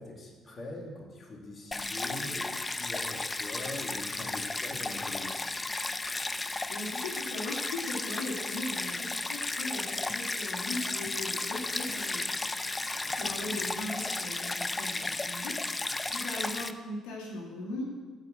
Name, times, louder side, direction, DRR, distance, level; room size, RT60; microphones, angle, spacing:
voice 1, 0.0-5.4 13.0-13.4, left 2 dB, 40° left, 0 dB, 2.3 m, -43 dB
Stream, 1.7-16.7, left 2 dB, 20° left, 0.5 m, -34 dB
voice 2, 6.3-12.4 12.7-17.9, left 2 dB, 90° left, -2 dB, 2.1 m, -39 dB
sound 1, 8.1-14.7, right 4 dB, 65° right, 2.0 m, -57 dB
13.0 x 4.9 x 7.4 m, 1.4 s
supercardioid pair, 70°, 0 cm